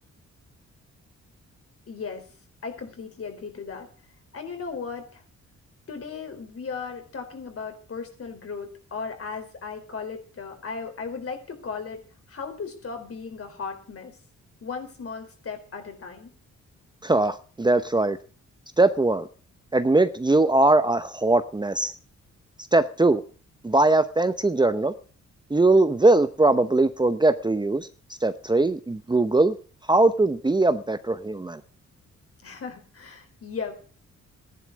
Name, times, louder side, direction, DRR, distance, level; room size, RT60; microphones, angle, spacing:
voice 1, 1.9-2.2 2.6-3.9 4.3-5.2 5.9-12.0 12.3-14.2 14.6-16.3 32.4-33.8, left 5 dB, 50° left, 6 dB, 4.3 m, -36 dB
voice 2, 17.0-18.2 18.8-19.3 19.7-21.9 22.7-23.2 23.6-24.9 25.5-27.9 28.2-29.6 29.9-31.6, right 2 dB, 15° right, 10 dB, 0.8 m, -21 dB
14.5 x 11.0 x 6.3 m, 0.41 s
cardioid pair, 105°, 29 cm